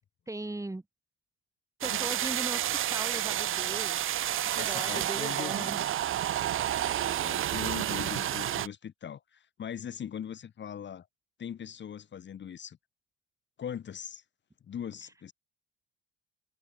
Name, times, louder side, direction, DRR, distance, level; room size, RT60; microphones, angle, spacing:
voice 1, 0.3-0.8 1.8-4.0 4.3-5.8, right 2 dB, 10° right, 3.3 m, -39 dB
sound 1, 1.8-8.7, right 12 dB, 45° right, 1.3 m, -30 dB
voice 2, 4.5-5.8 6.9-11.1 11.4-12.8 13.6-14.2 14.7-15.3, left 8 dB, 40° left, 2.1 m, -40 dB
figure-of-eight pair, 50°, 29 cm